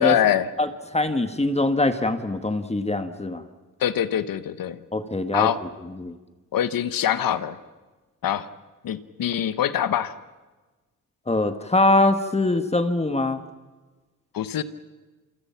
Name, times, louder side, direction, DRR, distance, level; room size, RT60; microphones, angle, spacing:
voice 1, 0.0-0.5 3.8-4.8 5.3-5.6 6.5-7.6 8.2-8.5 8.8-10.1 14.3-14.6, left 10 dB, 85° left, 13 dB, 1.2 m, -23 dB
voice 2, 0.6-3.5 4.9-5.7 6.0-6.2 11.3-13.4, left 2 dB, 20° left, 9 dB, 1.7 m, -23 dB
28.5 x 26.0 x 5.9 m, 1.2 s
cardioid pair, 95°, 33 cm